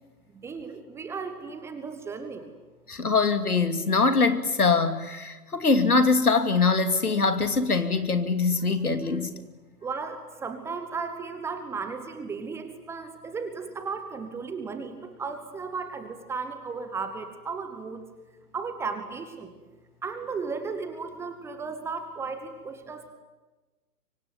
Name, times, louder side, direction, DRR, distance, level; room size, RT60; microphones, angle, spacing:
voice 1, 0.4-2.5 9.8-18.0 18.5-19.5 20.0-23.1, right 5 dB, 5° right, 8 dB, 1.1 m, -35 dB
voice 2, 2.9-9.3, left 4 dB, 70° left, 8 dB, 2.7 m, -23 dB
25.0 x 24.5 x 9.3 m, 1.2 s
figure-of-eight pair, 130°, 46 cm